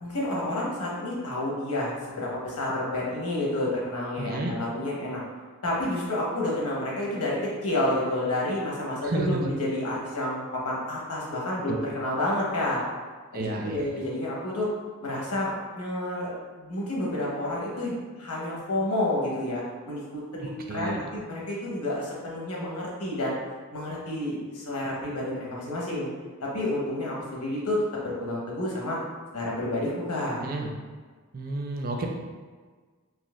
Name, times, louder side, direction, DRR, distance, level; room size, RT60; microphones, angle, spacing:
voice 1, 0.0-5.2 5.6-12.8 13.3-14.7 15.0-16.3 16.6-23.4 23.7-26.1 26.4-29.0 29.3-30.4, left 1 dB, 85° left, -4 dB, 1.0 m, -30 dB
voice 2, 4.2-4.5 9.0-9.4 11.7-11.8 13.3-13.9 20.4-21.0 30.4-30.7 31.3-32.1, right 2 dB, 40° right, 1 dB, 0.4 m, -31 dB
3.9 x 2.9 x 2.4 m, 1.5 s
head